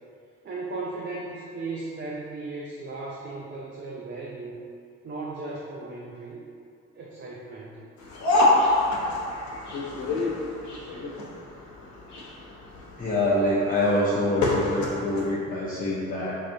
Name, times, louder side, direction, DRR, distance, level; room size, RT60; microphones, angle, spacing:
voice 1, 0.4-4.6 5.0-6.4 6.9-7.8, right 3 dB, 35° right, -5 dB, 0.5 m, -36 dB
sound 1, 8.0-15.3, left 2 dB, 70° left, 0.8 m, -26 dB
voice 2, 13.0-16.3, left 1 dB, 30° left, -8 dB, 0.6 m, -25 dB
4.8 x 2.6 x 2.6 m, 2.4 s
cardioid pair, 90°, 30 cm